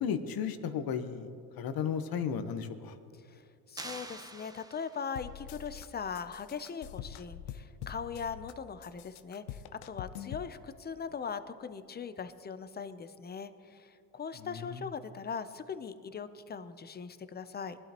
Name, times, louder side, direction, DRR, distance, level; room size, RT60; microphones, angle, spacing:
voice 1, 0.0-1.3 1.6-2.9 14.4-14.8, left 7 dB, 50° left, 9 dB, 1.2 m, -34 dB
voice 2, 3.7-17.8, left 6 dB, 20° left, 12 dB, 0.7 m, -40 dB
sound 1, 3.8-5.3, right 2 dB, 10° right, 1.0 m, -45 dB
sound 2, 5.2-5.9 6.1-8.5 8.8-10.5, left 10 dB, 75° left, 0.8 m, -44 dB
21.5 x 12.0 x 3.0 m, 2.4 s
supercardioid pair, 95°, 45 cm